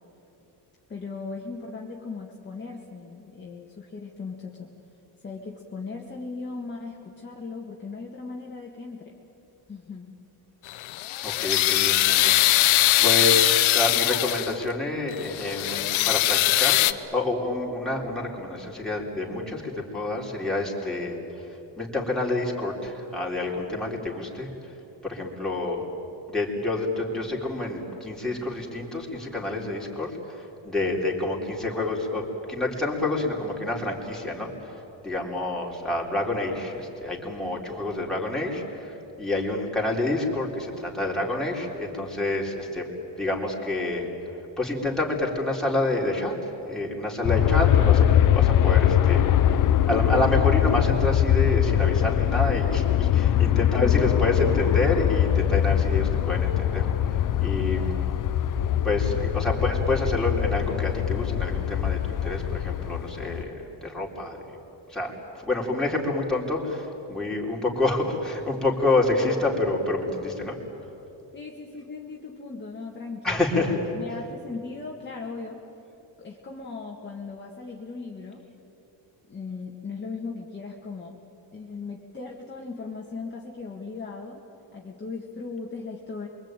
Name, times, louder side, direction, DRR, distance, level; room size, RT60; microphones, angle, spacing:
voice 1, 0.9-4.7 5.2-9.1 9.7-10.1 53.6-54.1 71.3-75.6 76.2-78.5 79.3-81.1 81.5-84.4 84.7-86.3, left 4 dB, 25° left, -2 dB, 1.9 m, -38 dB
sound 1, 10.7-14.6 15.1-16.9, left 16 dB, 85° left, 0.9 m, -21 dB
voice 2, 11.2-16.8 17.1-21.5 21.8-24.7 25.0-25.9 26.3-34.7 35.0-42.9 43.2-44.1 44.6-48.1 48.3-58.1 58.8-64.6 64.9-65.1 65.4-70.6 73.2-73.8, left 2 dB, ahead, -3 dB, 3.8 m, -28 dB
Aircraft, 47.3-63.4, left 11 dB, 45° left, 0.7 m, -22 dB
28.0 x 23.0 x 9.1 m, 3.0 s
cardioid pair, 155°, 47 cm